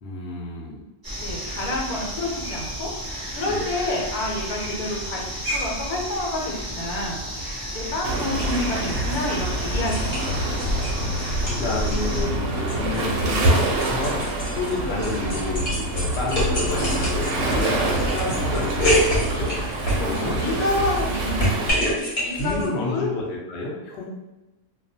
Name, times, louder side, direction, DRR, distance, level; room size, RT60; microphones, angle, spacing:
voice 1, 0.0-0.8 3.5-3.7 11.4-14.3 14.5-19.6 19.9-20.3 22.3-24.0, left 3 dB, 60° left, -3 dB, 0.6 m, -30 dB
sound 1, 1.0-12.3, equal, 20° right, 0.8 m, -31 dB
voice 2, 1.2-5.2 5.5-7.5 7.7-10.5 14.9-15.0 20.0-21.7 22.2-23.1, left 1 dB, 80° left, -1 dB, 1.1 m, -29 dB
Waves surf, 8.0-21.7, right 1 dB, 70° right, 0.8 m, -26 dB
sound 2, 8.4-8.6 8.9-10.9 11.2-12.0 12.3-20.5 20.8-22.7, equal, 40° left, 0.9 m, -27 dB
2.4 x 2.2 x 2.6 m, 1.1 s
omnidirectional pair, 1.6 m